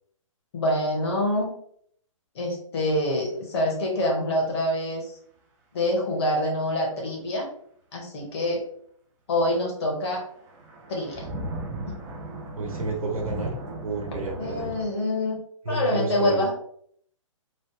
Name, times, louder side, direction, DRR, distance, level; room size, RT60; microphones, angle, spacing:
voice 1, 0.5-1.5 2.3-5.1 5.7-7.5 7.9-8.6 9.3-10.2 10.9-11.2 11.9-12.0 14.4-15.4 15.7-16.5, left 1 dB, 50° left, -1 dB, 1.2 m, -26 dB
sound 1, 10.3-14.8, right 2 dB, 15° right, 0.3 m, -36 dB
voice 2, 12.6-13.6 13.8-14.7 15.6-16.4, right 3 dB, 90° right, 0 dB, 0.9 m, -30 dB
3.2 x 2.1 x 3.0 m, 0.64 s
hypercardioid pair, 145°, 17 cm